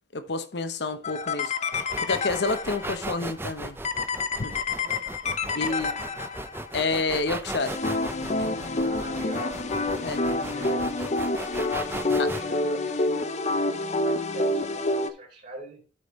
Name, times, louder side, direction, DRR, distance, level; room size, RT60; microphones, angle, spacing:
voice 1, 0.1-1.5 2.0-3.8 4.4-4.6 5.5-5.9 6.7-7.8 8.4-8.6 10.0-10.2 12.2-12.3, left 3 dB, 70° left, 0.9 m, -29 dB
sound 1, 1.0-3.0 3.8-6.7 7.6-15.1, left 2 dB, 40° left, 0.6 m, -28 dB
sound 2, 1.7-12.4, right 2 dB, 15° right, 0.5 m, -37 dB
voice 2, 4.8-5.1 5.4-6.2 8.8-9.9 10.2-10.9 12.0-15.8, right 2 dB, 45° right, 3.2 m, -43 dB
12.0 x 5.2 x 3.1 m
head